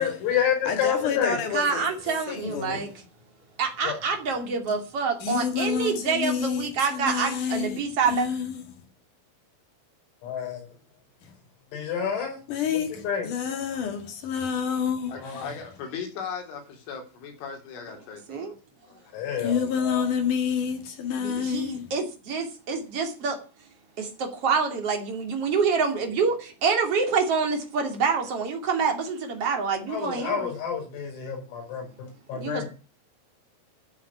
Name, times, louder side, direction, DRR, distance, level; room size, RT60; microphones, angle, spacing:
voice 1, 0.0-1.4 1.8-2.2 3.8-4.0 10.3-10.5 11.7-12.4 12.7-13.3 15.1-15.5 19.1-20.1 29.9-31.9 32.3-32.7, left 8 dB, 85° left, 8.6 m, -29 dB
voice 2, 0.7-1.9 2.3-2.9 5.2-7.8 8.1-8.5 12.5-15.1 19.4-21.8, left 7 dB, 55° left, 2.6 m, -28 dB
voice 3, 1.5-2.9 3.6-8.3 18.3-18.5 21.2-23.4 24.0-30.5 32.3-32.7, right 5 dB, 40° right, 2.6 m, -27 dB
voice 4, 15.1-18.6 18.9-19.4, left 6 dB, 70° left, 5.9 m, -38 dB
14.5 x 7.8 x 8.5 m
omnidirectional pair, 5.9 m